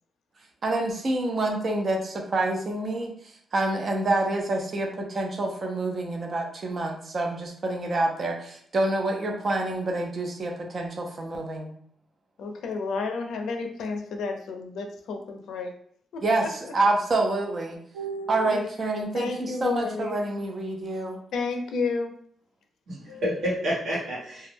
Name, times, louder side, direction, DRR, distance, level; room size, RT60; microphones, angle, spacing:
voice 1, 0.6-3.1 3.5-11.7 16.2-17.8 18.3-21.2, right 2 dB, 40° right, 1 dB, 0.4 m, -27 dB
voice 2, 12.4-15.7 16.1-16.5 18.4-18.7 19.1-20.2 21.3-22.1, left 4 dB, 85° left, 4 dB, 0.4 m, -31 dB
voice 3, 17.9-18.5 22.9-24.5, equal, 75° right, -6 dB, 1.0 m, -30 dB
2.2 x 2.0 x 3.2 m, 0.64 s
cardioid pair, 140°, 0 cm